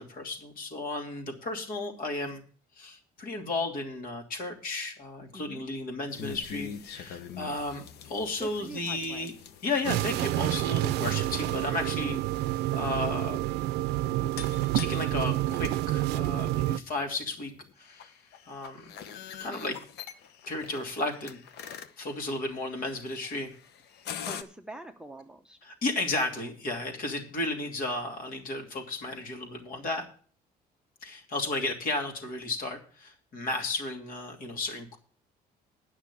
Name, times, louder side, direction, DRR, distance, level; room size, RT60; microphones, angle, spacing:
voice 1, 0.0-2.4 2.8-9.3 9.6-13.5 14.7-17.5 17.8-18.1 18.5-18.9 19.4-19.8 20.5-23.5 25.6-30.1 31.0-35.0, left 2 dB, 55° left, 2 dB, 2.8 m, -34 dB
sound 1, 6.1-24.4, left 8 dB, 75° left, 0.9 m, -45 dB
voice 2, 8.4-9.3 24.2-25.6, right 2 dB, 5° right, 7 dB, 0.8 m, -44 dB
sound 2, 9.8-16.8, right 15 dB, 85° right, 0.5 m, -28 dB
9.6 x 6.1 x 8.3 m, 0.43 s
cardioid pair, 110°, 17 cm